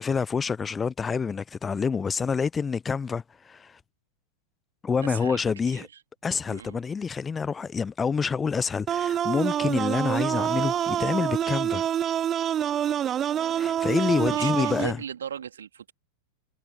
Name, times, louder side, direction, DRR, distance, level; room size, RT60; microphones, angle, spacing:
voice 1, 0.0-3.8 4.8-5.9 6.2-11.9 13.5-15.0, left 5 dB, 15° left, 0.5 m, -27 dB
voice 2, 5.0-5.9 6.5-6.8 13.0-13.1 14.1-15.9, right 8 dB, 65° right, 2.8 m, -37 dB
sound 1, 8.9-14.9, right 10 dB, 25° right, 1.0 m, -26 dB
figure-of-eight pair, 90°, 0 cm